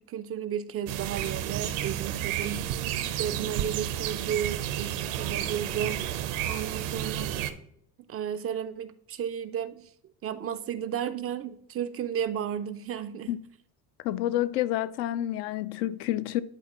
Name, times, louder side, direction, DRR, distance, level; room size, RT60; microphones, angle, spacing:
voice 1, 0.0-7.4 8.1-9.9 10.2-13.3, right 9 dB, 35° right, 0.4 m, -34 dB
sound 1, 0.9-7.5, right 11 dB, 70° right, 0.8 m, -31 dB
voice 2, 14.0-16.4, left 13 dB, 75° left, 0.5 m, -29 dB
10.5 x 4.0 x 2.9 m
hypercardioid pair, 70°, 47 cm